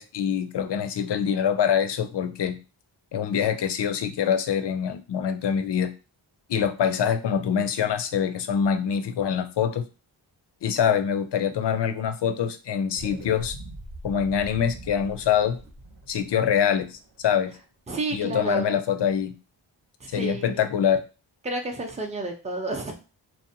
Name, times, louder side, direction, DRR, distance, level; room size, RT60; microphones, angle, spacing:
voice 1, 0.0-2.6 3.1-5.9 6.5-9.8 10.6-13.6 14.0-15.6 16.1-17.6 18.1-19.4 20.1-21.0, left 8 dB, 60° left, 10 dB, 0.5 m, -25 dB
sound 1, 12.9-17.6, right 1 dB, 60° right, 0.9 m, -42 dB
voice 2, 17.9-18.8 20.0-20.7 21.4-23.0, right 2 dB, 15° right, 2 dB, 0.5 m, -31 dB
2.6 x 2.1 x 2.7 m, 0.32 s
cardioid pair, 40°, 49 cm